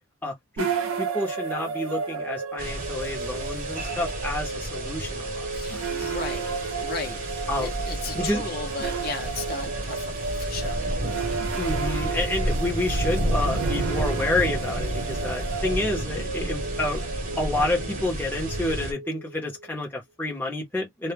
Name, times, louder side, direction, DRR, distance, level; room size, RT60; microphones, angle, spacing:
voice 1, 0.2-5.9 7.5-7.7 8.1-8.4 11.6-17.0 17.4-21.1, left 2 dB, 10° left, 0.7 m, -29 dB
sound 1, 0.6-19.7, right 5 dB, 90° right, 0.6 m, -33 dB
sound 2, 2.6-18.9, right 1 dB, 40° right, 0.8 m, -31 dB
voice 2, 5.5-7.2 7.6-10.9, left 4 dB, 45° left, 0.7 m, -36 dB
2.1 x 2.1 x 3.3 m
head